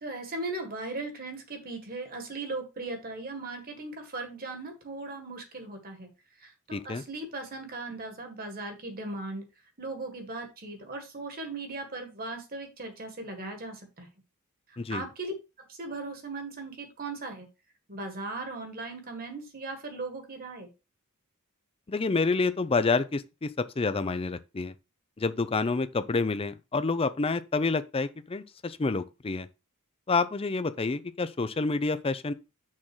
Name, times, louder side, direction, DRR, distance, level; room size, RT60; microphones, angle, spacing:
voice 1, 0.0-6.1 6.4-9.4 9.8-14.1 14.9-15.3 15.6-17.5 17.9-20.7, right 2 dB, 40° right, 1.7 m, -38 dB
voice 2, 6.7-7.0 14.8-15.1 21.9-24.7 25.2-29.5 30.1-32.3, left 3 dB, 25° left, 0.5 m, -28 dB
6.5 x 3.7 x 6.1 m
head